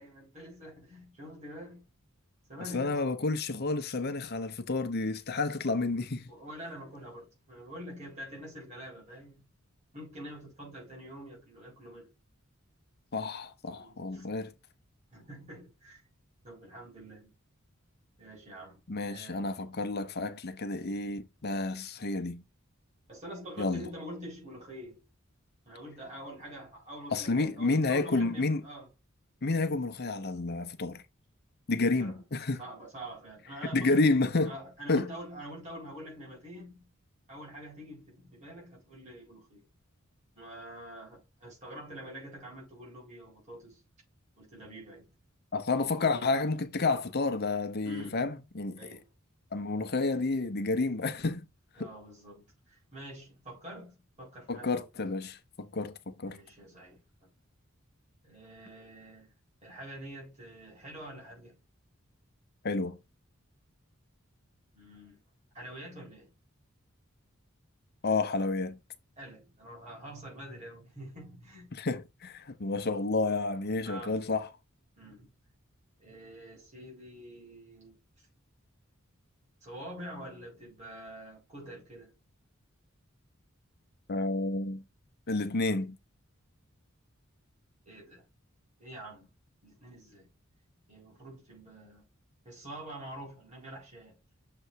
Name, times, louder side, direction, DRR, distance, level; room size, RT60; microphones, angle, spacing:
voice 1, 0.0-1.8 2.5-3.0 6.3-9.4 9.9-12.1 13.8-14.2 15.1-16.0 16.4-17.3 18.2-19.5 23.1-25.0 25.7-28.9 32.0-32.2 32.6-34.1 34.5-36.8 37.3-39.6 40.4-43.8 44.4-45.1 46.1-46.3 47.8-48.2 48.8-49.1 51.8-54.9 56.2-57.3 58.2-59.3 59.6-61.6 64.7-65.2 65.5-66.3 69.2-71.7 73.8-74.2 75.0-75.3 76.0-78.0 79.6-82.1 87.9-88.2 88.8-89.3 89.6-90.3 90.9-92.0 92.4-94.2, equal, 35° right, 4.1 m, -46 dB
voice 2, 2.7-6.3 13.1-14.5 18.9-22.4 23.6-23.9 27.1-28.6 29.4-31.0 31.7-32.6 33.7-34.6 34.9-35.1 45.5-49.0 49.5-51.5 51.8-51.9 54.5-56.4 62.6-63.0 68.0-68.8 71.7-74.5 84.1-84.8 85.3-86.0, left 3 dB, 50° left, 0.8 m, -30 dB
6.8 x 3.4 x 4.5 m
head